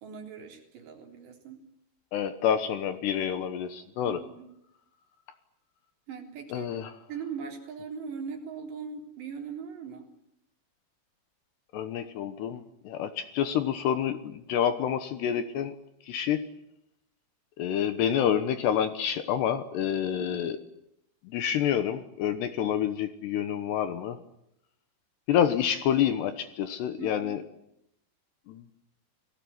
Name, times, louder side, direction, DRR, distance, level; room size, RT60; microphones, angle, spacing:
voice 1, 0.0-1.6 4.0-4.5 6.1-6.8 7.1-10.1 20.2-20.6 27.0-27.4, right 6 dB, 60° right, 2 dB, 5.5 m, -40 dB
voice 2, 2.1-4.2 6.5-6.9 11.7-15.8 16.1-16.4 17.6-20.6 21.3-24.2 25.3-27.4 28.5-28.6, left 9 dB, 70° left, 10 dB, 2.8 m, -28 dB
29.5 x 18.5 x 9.4 m, 0.81 s
omnidirectional pair, 5.7 m